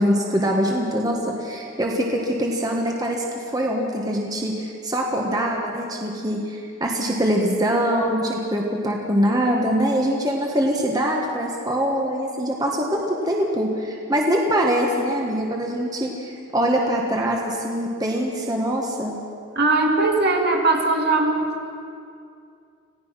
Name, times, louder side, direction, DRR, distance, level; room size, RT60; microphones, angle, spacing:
voice 1, 0.0-19.2, equal, 20° right, -1 dB, 1.7 m, -23 dB
voice 2, 19.6-21.7, right 3 dB, 50° right, 1 dB, 2.2 m, -20 dB
26.5 x 17.0 x 6.0 m, 2.4 s
head